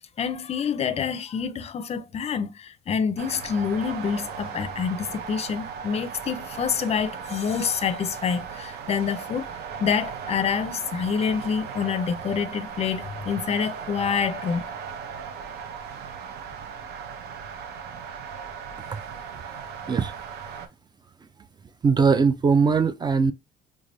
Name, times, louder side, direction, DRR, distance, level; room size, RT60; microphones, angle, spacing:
voice 1, 0.2-9.5 9.8-14.7, left 6 dB, 40° left, 0.5 m, -27 dB
sound 1, 3.2-20.7, right 6 dB, 75° right, 0.7 m, -37 dB
voice 2, 21.8-23.3, right 5 dB, 25° right, 0.4 m, -20 dB
3.4 x 3.3 x 2.6 m
cardioid pair, 110°, 17 cm